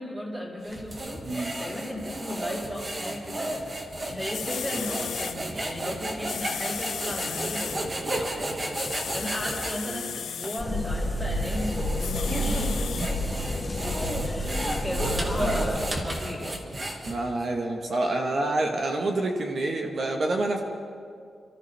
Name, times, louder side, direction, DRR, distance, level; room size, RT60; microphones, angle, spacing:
voice 1, 0.0-1.3 1.6-3.5 4.1-12.8 14.2-16.6, left 1 dB, 5° right, -4 dB, 3.3 m, -35 dB
sound 1, 0.6-9.8 10.4-10.5 11.2-17.4, right 1 dB, 30° right, 1.6 m, -33 dB
sound 2, 4.0-4.1 4.3-5.4 6.2-7.8 8.7-10.6 12.0-13.1 13.8-13.9, left 8 dB, 80° left, 0.5 m, -35 dB
sound 3, 10.6-15.9, left 1 dB, 25° left, 1.0 m, -29 dB
voice 2, 15.3-15.8 17.0-20.6, right 2 dB, 50° right, 2 dB, 1.2 m, -28 dB
28.0 x 13.5 x 3.4 m, 2.2 s
wide cardioid pair, 165°, 0 cm